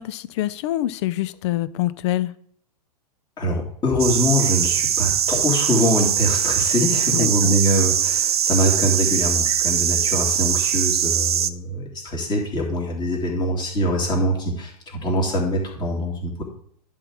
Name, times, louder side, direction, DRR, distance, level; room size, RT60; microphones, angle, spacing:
voice 1, 0.0-2.3 7.1-7.6, left 14 dB, 45° left, 17 dB, 0.5 m, -25 dB
voice 2, 3.4-16.4, equal, 20° left, -1 dB, 2.8 m, -23 dB
sound 1, 4.0-11.5, right 9 dB, 70° right, 0.6 m, -21 dB
10.5 x 3.8 x 6.3 m, 0.63 s
figure-of-eight pair, 105°, 20 cm